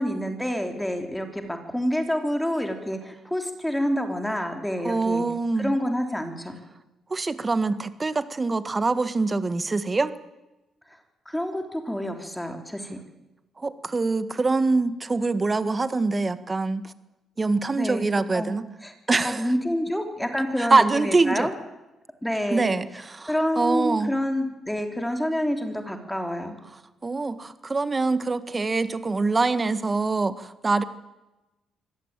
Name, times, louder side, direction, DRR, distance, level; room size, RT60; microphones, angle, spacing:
voice 1, 0.0-5.2 5.6-6.6 11.3-13.0 17.7-18.1 18.3-18.9 19.2-21.5 22.2-22.7 23.3-26.6, equal, 5° left, 5 dB, 3.4 m, -28 dB
voice 2, 4.8-5.7 7.1-10.1 13.6-16.9 17.4-18.7 19.1-19.5 20.6-21.5 22.5-24.1 27.0-30.8, right 3 dB, 25° right, 12 dB, 1.6 m, -24 dB
25.0 x 17.0 x 9.0 m, 1.0 s
cardioid pair, 90°, 0 cm